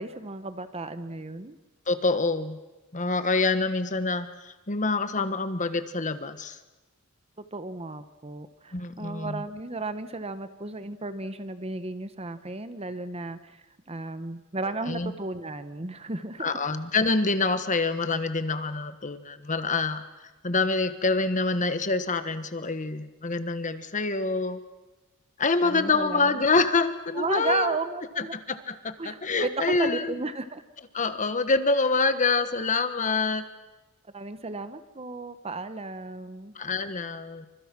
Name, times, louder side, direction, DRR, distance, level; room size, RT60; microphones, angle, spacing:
voice 1, 0.0-1.6 7.5-16.6 25.6-26.5 27.1-28.4 29.0-30.6 34.1-36.5, right 3 dB, 30° right, 11 dB, 1.1 m, -34 dB
voice 2, 1.9-2.6 2.9-6.6 8.7-9.4 14.9-15.1 16.4-20.0 20.4-24.6 25.4-27.8 28.5-30.1 30.9-33.4 36.5-37.5, left 3 dB, 35° left, 11 dB, 1.3 m, -26 dB
28.5 x 25.0 x 6.1 m, 1.1 s
head